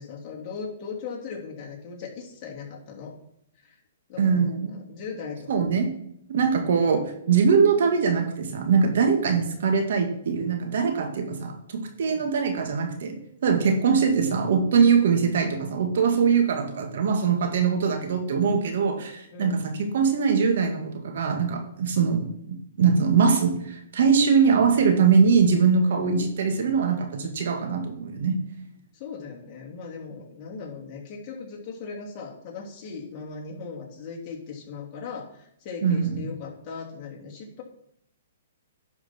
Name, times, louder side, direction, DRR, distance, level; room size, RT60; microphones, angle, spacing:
voice 1, 0.0-3.2 3.6-3.8 4.1-5.7 12.1-12.3 13.6-13.8 19.3-19.6 25.9-26.2 28.9-37.6, left 5 dB, 35° left, -2 dB, 2.7 m, -38 dB
voice 2, 4.2-4.8 5.5-5.9 6.3-7.0 7.3-28.4 35.8-36.2, right 5 dB, 65° right, 4 dB, 1.8 m, -22 dB
10.5 x 5.8 x 4.5 m, 0.73 s
hypercardioid pair, 140°, 0 cm